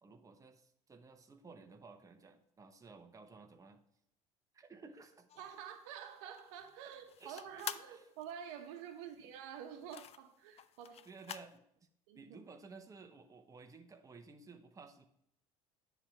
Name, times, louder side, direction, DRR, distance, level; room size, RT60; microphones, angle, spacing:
voice 1, 0.0-3.8 4.5-5.3 7.2-8.0 9.0-9.1 11.1-11.9 12.1-15.1, right 4 dB, 20° right, 6 dB, 0.9 m, -55 dB
sound 1, 5.3-11.6, left 10 dB, 40° left, 0.4 m, -49 dB
voice 2, 5.4-11.0 12.1-12.3, right 8 dB, 80° right, 6 dB, 1.0 m, -48 dB
9.7 x 3.4 x 5.9 m, 0.72 s
supercardioid pair, 80°, 16 cm